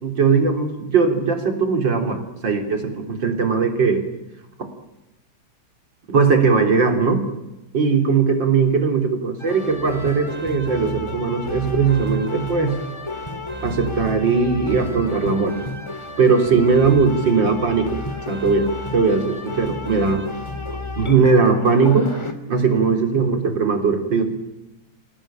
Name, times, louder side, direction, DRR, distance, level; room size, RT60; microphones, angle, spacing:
voice 1, 0.0-4.0 6.1-7.2 7.7-12.8 13.6-15.5 16.2-18.0 18.3-20.2 21.0-22.1 22.5-24.2, right 5 dB, 65° right, 5 dB, 4.1 m, -19 dB
sound 1, 9.4-22.3, left 2 dB, 15° left, 2.2 m, -31 dB
27.0 x 18.0 x 9.0 m, 0.96 s
omnidirectional pair, 2.1 m